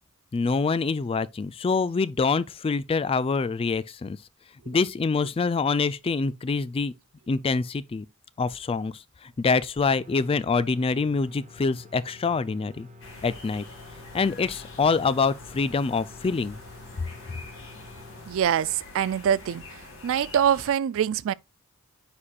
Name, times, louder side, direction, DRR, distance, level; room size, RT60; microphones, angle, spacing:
voice 1, 0.3-4.2 4.7-6.9 7.3-8.1 8.4-12.9 13.2-13.6 14.1-16.6, left 4 dB, 25° left, 0.3 m, -25 dB
sound 1, 9.8-18.3, left 2 dB, 35° right, 0.9 m, -49 dB
sound 2, 13.0-20.7, left 2 dB, 65° left, 2.3 m, -45 dB
voice 2, 18.3-19.6 20.0-21.3, right 9 dB, 60° right, 0.3 m, -24 dB
9.6 x 4.3 x 2.4 m
head